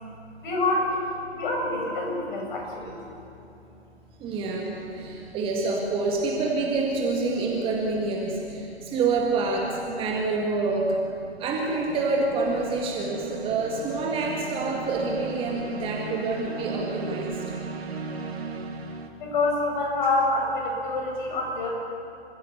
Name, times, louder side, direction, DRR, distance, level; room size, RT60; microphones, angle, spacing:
voice 1, 0.4-1.0 1.3-3.0 5.1-5.2 17.5-17.6 19.2-21.7, left 2 dB, 45° left, 0 dB, 6.5 m, -26 dB
voice 2, 4.2-11.0 11.4-17.4, right 3 dB, 15° right, -1 dB, 2.0 m, -27 dB
sound 1, 5.0-5.4 11.3-19.1, right 5 dB, 65° right, 2.1 m, -37 dB
28.0 x 15.5 x 6.9 m, 2.7 s
figure-of-eight pair, 135°, 34 cm